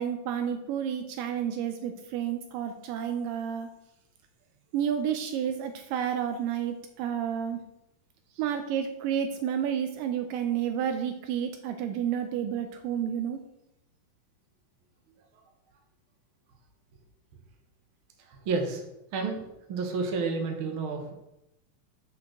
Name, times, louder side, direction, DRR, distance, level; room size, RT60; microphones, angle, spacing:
voice 1, 0.0-3.7 4.7-7.6 8.4-13.4, right 9 dB, 80° right, 7 dB, 2.2 m, -30 dB
voice 2, 18.2-18.8 19.1-19.4 19.7-21.1, right 4 dB, 55° right, 3 dB, 1.5 m, -30 dB
6.5 x 5.9 x 6.4 m, 0.86 s
omnidirectional pair, 4.2 m